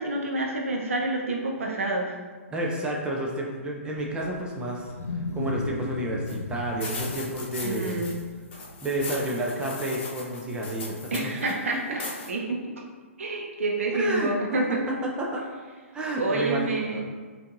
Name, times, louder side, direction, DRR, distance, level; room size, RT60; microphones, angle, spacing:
voice 1, 0.0-2.2 7.6-8.1 11.1-12.0 12.3-12.8 13.2-14.8 16.2-17.0, right 2 dB, 70° right, 0 dB, 0.8 m, -28 dB
voice 2, 2.5-4.9 5.3-8.0 8.8-11.3 14.0-14.3 15.0-15.4 15.9-17.0, right 1 dB, 10° right, -2 dB, 0.4 m, -30 dB
Wild animals, 4.0-9.0, left 3 dB, 90° left, 0.4 m, -35 dB
sound 1, 6.3-6.4 6.8-8.2 8.5-11.5 12.0-12.3, left 3 dB, 45° left, 0.9 m, -38 dB
5.1 x 2.6 x 2.5 m, 1.4 s
figure-of-eight pair, 125°, 8 cm